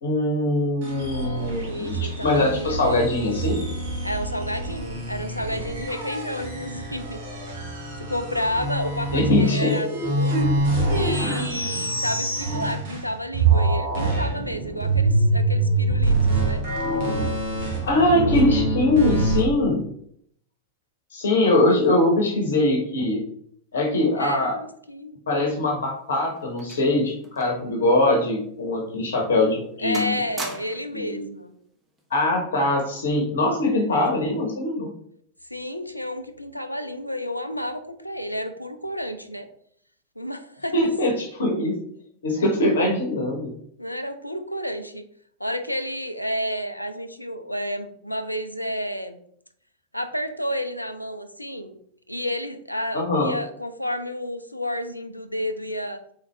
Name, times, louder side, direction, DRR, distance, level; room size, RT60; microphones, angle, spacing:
voice 1, 0.0-2.0 2.2-3.6 9.1-9.7 17.8-19.8 21.1-23.2 23.7-24.6 25.3-30.2 30.9-31.3 32.1-34.9 40.7-41.7 42.2-43.5 52.9-53.3, left 2 dB, 65° left, 1 dB, 0.9 m, -22 dB
sound 1, 0.8-13.1 13.3-19.4, right 2 dB, 55° right, 1.4 m, -25 dB
voice 2, 1.6-3.0 4.0-7.2 7.5-7.7 8.0-10.4 10.9-16.6 17.6-17.7 21.7-21.8 24.2-25.2 29.8-31.5 33.9-34.2 35.4-39.5 40.2-40.8 43.8-45.0 45.4-49.2 49.9-51.8 52.1-56.0, equal, 90° left, 8 dB, 0.4 m, -31 dB
sound 2, 25.6-27.8 28.0-28.2 28.8-29.0 29.4-29.7 29.9-31.0 32.0-32.3, right 2 dB, 15° right, 1.0 m, -39 dB
4.0 x 4.0 x 3.2 m, 0.66 s
figure-of-eight pair, 90°, 0 cm